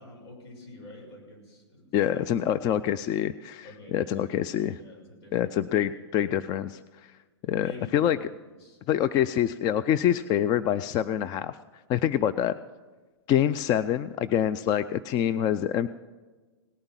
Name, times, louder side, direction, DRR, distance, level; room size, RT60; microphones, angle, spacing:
voice 1, 0.0-2.9 3.6-5.6 7.6-8.8, left 1 dB, 70° left, 0 dB, 6.6 m, -48 dB
voice 2, 1.9-4.8 5.3-6.8 7.5-8.2 8.9-11.6 11.9-12.5 13.3-15.9, left 10 dB, 30° left, 14 dB, 0.4 m, -26 dB
18.5 x 8.8 x 7.3 m, 1.3 s
hypercardioid pair, 125°, 14 cm